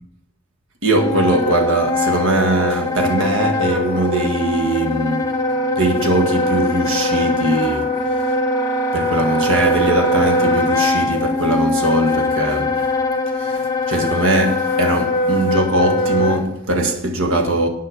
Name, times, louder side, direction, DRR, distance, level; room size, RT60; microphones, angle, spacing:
voice 1, 0.8-5.4 5.8-8.0 8.9-12.9 13.4-13.6 13.9-17.7, right 1 dB, 65° right, 1.4 m, -20 dB
Wind instrument woodwind instrument, 0.9-16.4, left 1 dB, 15° left, 1.0 m, -21 dB
11.0 x 5.7 x 8.1 m
head